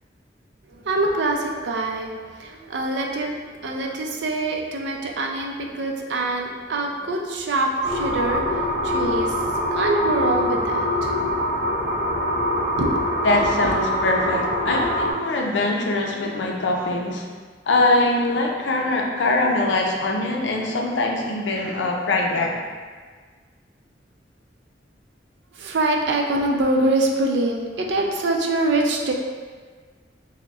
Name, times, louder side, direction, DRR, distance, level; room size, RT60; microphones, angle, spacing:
voice 1, 0.7-11.4 12.7-13.2 13.6-13.7 25.5-29.1, right 2 dB, 75° right, 1 dB, 0.5 m, -25 dB
sound 1, 7.8-15.1, equal, 5° left, 1.4 m, -24 dB
voice 2, 13.2-17.3 17.7-22.6, left 2 dB, 85° left, 0 dB, 0.5 m, -22 dB
6.3 x 2.1 x 2.4 m, 1.5 s
head